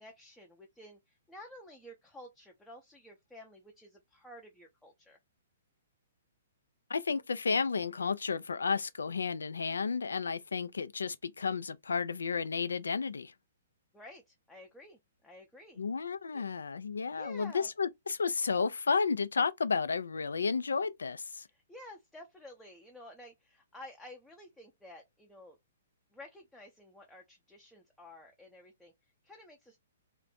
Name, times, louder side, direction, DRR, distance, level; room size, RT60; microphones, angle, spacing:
voice 1, 0.0-5.2 13.9-15.8 16.3-16.4 17.1-17.7 21.5-25.6 26.1-28.9 29.2-29.8, left 1 dB, 5° left, 0.6 m, -52 dB
voice 2, 6.9-13.3 15.8-21.5, left 5 dB, 70° left, 0.4 m, -32 dB
2.5 x 2.2 x 3.7 m
figure-of-eight pair, 120°, 0 cm